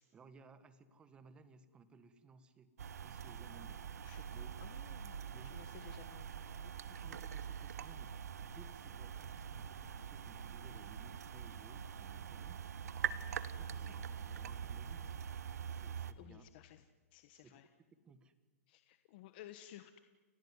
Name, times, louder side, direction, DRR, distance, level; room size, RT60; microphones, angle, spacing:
voice 1, 0.1-2.7 3.0-3.8 4.3-4.5 5.3-5.7 6.9-12.6 13.1-15.2 15.7-16.5 17.3-17.6 18.0-18.3, right 4 dB, 10° right, 12 dB, 1.4 m, -60 dB
sound 1, 2.8-16.1, right 8 dB, 80° right, 1.5 m, -44 dB
voice 2, 4.6-5.2 5.4-6.7 13.7-14.0 16.2-16.8 17.1-17.7 18.7-20.0, left 13 dB, 35° left, 9 dB, 1.2 m, -56 dB
29.5 x 18.0 x 9.7 m, 1.4 s
hypercardioid pair, 170°, 8 cm